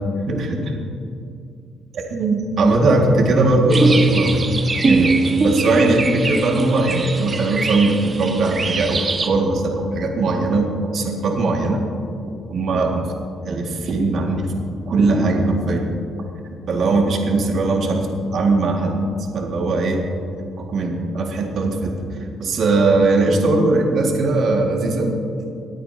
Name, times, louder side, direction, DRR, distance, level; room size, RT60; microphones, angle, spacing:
voice 1, 0.3-0.8 2.1-4.4 4.8-5.2 5.4-11.8 12.5-13.1 13.5-14.5 14.9-15.9 16.7-18.1 18.3-19.0 19.3-20.0 20.6-21.9 22.4-25.1, right 2 dB, 65° right, 0 dB, 1.9 m, -19 dB
sound 1, 3.7-9.3, right 2 dB, 35° right, 0.9 m, -21 dB
19.5 x 8.7 x 2.8 m, 2.4 s
cardioid pair, 85°, 0 cm